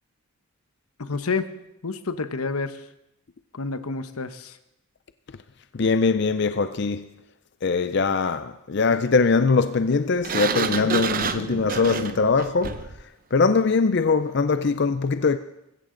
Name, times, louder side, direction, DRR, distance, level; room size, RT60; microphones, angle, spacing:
voice 1, 1.0-1.5 1.8-2.8 3.5-4.6, left 4 dB, 90° left, 1.0 m, -29 dB
voice 2, 5.8-7.0 7.6-12.8 13.3-15.4, left 4 dB, 50° left, 0.5 m, -22 dB
Sliding door, 10.2-13.0, right 5 dB, 40° right, 0.7 m, -28 dB
20.5 x 16.0 x 3.9 m
head